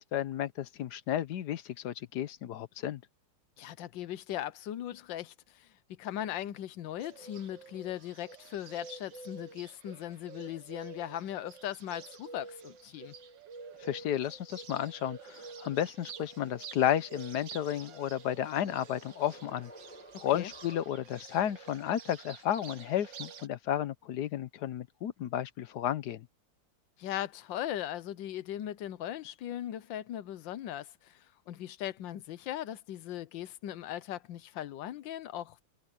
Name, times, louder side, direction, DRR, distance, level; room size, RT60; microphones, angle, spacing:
voice 1, 0.0-3.0 13.8-19.7 20.2-26.3, left 11 dB, 65° left, 1.3 m, -32 dB
voice 2, 3.6-13.1 20.1-20.5 27.0-35.6, left 12 dB, 80° left, 1.5 m, -39 dB
Bird, 7.0-23.5, right 5 dB, 75° right, 2.1 m, -49 dB
sound 1, 17.8-21.4, equal, 5° left, 1.7 m, -55 dB
omnidirectional pair, 2.0 m